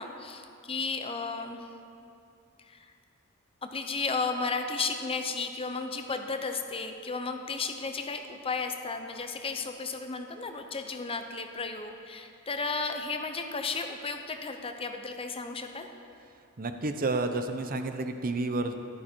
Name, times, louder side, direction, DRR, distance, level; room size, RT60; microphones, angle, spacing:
voice 1, 0.0-1.6 2.6-2.9 3.6-15.9, left 4 dB, 25° left, 6 dB, 0.7 m, -34 dB
voice 2, 16.6-18.7, right 2 dB, 40° right, 7 dB, 0.7 m, -30 dB
14.0 x 11.5 x 4.4 m, 2.6 s
head